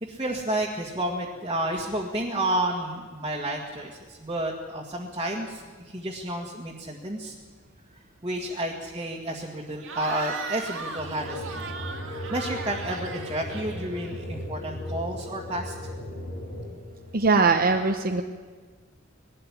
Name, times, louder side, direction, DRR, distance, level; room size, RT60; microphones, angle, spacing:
voice 1, 0.0-7.4 8.2-11.6 12.0-15.7, right 1 dB, 25° right, -2 dB, 1.9 m, -31 dB
Cheering / Crowd, 9.8-14.4, right 4 dB, 70° right, 2.1 m, -38 dB
sound 1, 10.9-17.2, left 1 dB, 80° left, 4.0 m, -37 dB
voice 2, 17.1-18.2, right 4 dB, 45° right, 4 dB, 0.9 m, -21 dB
20.0 x 13.0 x 9.9 m, 1.5 s
head